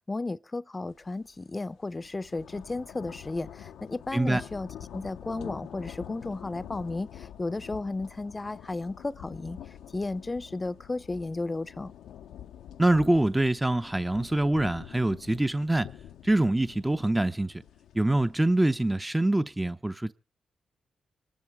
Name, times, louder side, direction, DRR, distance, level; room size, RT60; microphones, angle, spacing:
voice 1, 0.1-9.6 9.9-11.9, left 2 dB, 30° left, 0.7 m, -34 dB
sound 1, 1.0-1.2 1.6-18.9, left 10 dB, 90° left, 0.7 m, -46 dB
voice 2, 4.1-4.4 12.8-15.9 16.2-17.6 17.9-20.1, right 1 dB, 15° right, 0.7 m, -25 dB
26.0 x 12.5 x 3.5 m
cardioid pair, 55°, 0 cm